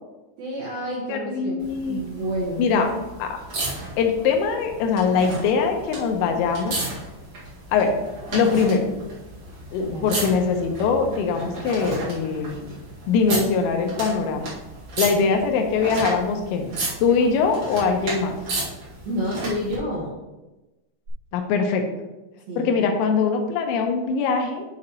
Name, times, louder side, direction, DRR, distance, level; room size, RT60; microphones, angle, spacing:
voice 1, 0.4-3.0 9.8-10.1 19.1-20.1 22.5-22.9, equal, 75° right, -4 dB, 2.2 m, -30 dB
voice 2, 1.1-2.0 2.6-2.9 3.2-3.3 4.0-6.9 7.7-7.9 8.3-8.9 9.7-12.7 13.1-14.5 15.0-16.7 17.0-18.4 21.3-21.8 22.6-24.7, left 5 dB, 85° left, 4 dB, 3.4 m, -22 dB
sound 1, 1.6-19.8 21.1-21.2, right 2 dB, 55° right, 2.0 m, -34 dB
9.5 x 6.4 x 2.9 m, 1.1 s
omnidirectional pair, 5.9 m